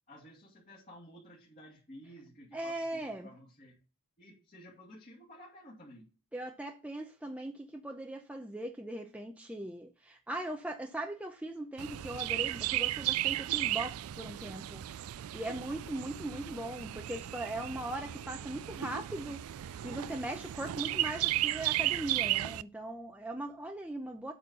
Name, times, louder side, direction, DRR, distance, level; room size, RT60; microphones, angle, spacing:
voice 1, 0.1-3.8 4.2-6.1, equal, 35° left, 2.5 m, -53 dB
voice 2, 2.5-3.3 6.3-14.8 15.3-24.3, right 1 dB, 5° right, 0.7 m, -39 dB
Chirp tweet, 11.8-22.6, right 14 dB, 65° right, 0.3 m, -35 dB
8.4 x 4.3 x 6.4 m
head